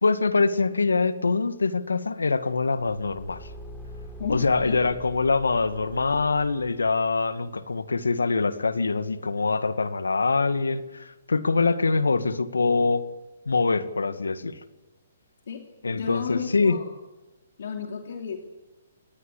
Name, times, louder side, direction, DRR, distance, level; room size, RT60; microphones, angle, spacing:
voice 1, 0.0-3.5 4.3-13.0 13.5-14.6 15.8-16.8, left 4 dB, 90° left, 12 dB, 1.9 m, -24 dB
Car / Engine, 2.6-7.2, equal, 5° left, 5.0 m, -44 dB
voice 2, 4.2-4.8 15.5-15.7 15.9-16.9 17.6-18.4, left 7 dB, 65° left, 4 dB, 3.0 m, -33 dB
28.5 x 20.0 x 8.4 m, 1.1 s
hypercardioid pair, 135°, 0 cm